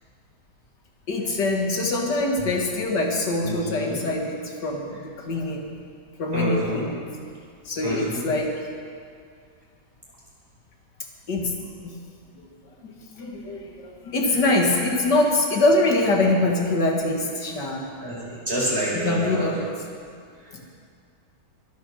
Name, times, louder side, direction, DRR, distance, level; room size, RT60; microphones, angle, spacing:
voice 1, 1.1-5.7 6.2-7.1 7.7-8.5 11.3-11.5 11.8-12.0 12.8-17.9 18.9-19.7 20.5-20.6, left 2 dB, 80° left, 1 dB, 2.5 m, -24 dB
voice 2, 3.4-4.0 6.3-6.8 7.8-8.2 18.0-19.5, equal, 35° right, -6 dB, 5.3 m, -27 dB
22.5 x 9.5 x 6.5 m, 2.2 s
omnidirectional pair, 1.8 m